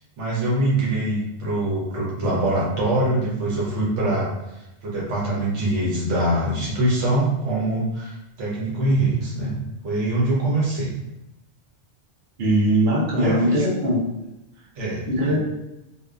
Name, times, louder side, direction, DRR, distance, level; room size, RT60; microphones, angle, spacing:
voice 1, 0.2-9.6 9.8-10.9 13.1-13.7 14.7-15.4, right 1 dB, 85° right, -6 dB, 1.2 m, -24 dB
voice 2, 12.4-14.0 15.1-15.4, right 1 dB, 60° right, -6 dB, 1.0 m, -20 dB
2.7 x 2.2 x 2.3 m, 0.93 s
omnidirectional pair, 1.2 m